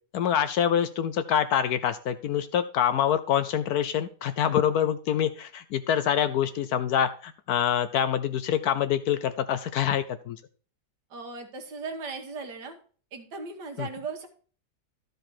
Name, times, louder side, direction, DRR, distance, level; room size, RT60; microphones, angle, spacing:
voice 1, 0.1-10.4 13.8-13.9, left 9 dB, 70° left, 12 dB, 1.0 m, -26 dB
voice 2, 11.1-12.8 13.1-14.3, right 4 dB, 70° right, 5 dB, 1.8 m, -37 dB
12.5 x 5.0 x 4.3 m, 0.42 s
omnidirectional pair, 1.9 m